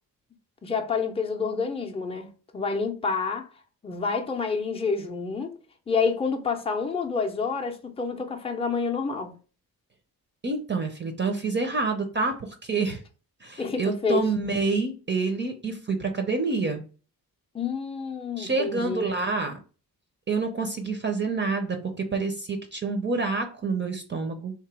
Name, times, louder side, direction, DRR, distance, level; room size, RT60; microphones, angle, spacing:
voice 1, 0.6-3.5 3.8-5.5 5.9-9.4 13.6-14.3 17.5-19.2, left 5 dB, 15° left, 0.5 m, -28 dB
voice 2, 10.4-13.0 13.4-16.8 18.4-19.6 20.3-24.5, right 4 dB, 30° right, 0.5 m, -27 dB
3.7 x 2.9 x 4.7 m
wide cardioid pair, 170°, 36 cm